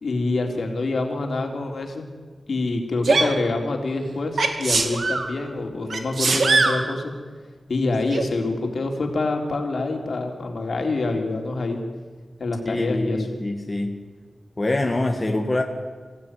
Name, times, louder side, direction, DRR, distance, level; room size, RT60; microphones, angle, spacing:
voice 1, 0.0-2.1 2.5-7.1 7.7-11.8 12.4-13.3, left 3 dB, 65° left, 3 dB, 3.6 m, -26 dB
Sneeze, 3.0-3.3 4.4-5.3 5.9-6.8 8.1-8.2, right 3 dB, 70° right, 2.5 m, -21 dB
voice 2, 12.7-13.9 14.6-15.6, left 2 dB, 25° left, 3 dB, 1.9 m, -24 dB
25.5 x 16.0 x 9.8 m, 1.5 s
wide cardioid pair, 125°, 0 cm